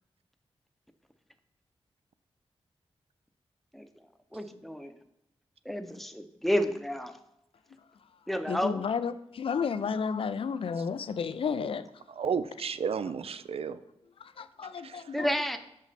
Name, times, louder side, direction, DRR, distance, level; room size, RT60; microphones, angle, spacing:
voice 1, 4.3-4.9 5.6-7.1 8.3-8.8 15.1-15.6, equal, ahead, 0.7 m, -30 dB
voice 2, 8.5-11.8 14.4-15.2, left 6 dB, 60° left, 0.4 m, -32 dB
voice 3, 12.1-13.8 14.8-15.2, right 6 dB, 70° right, 0.4 m, -33 dB
6.2 x 5.2 x 4.1 m
cardioid pair, 55°, 10 cm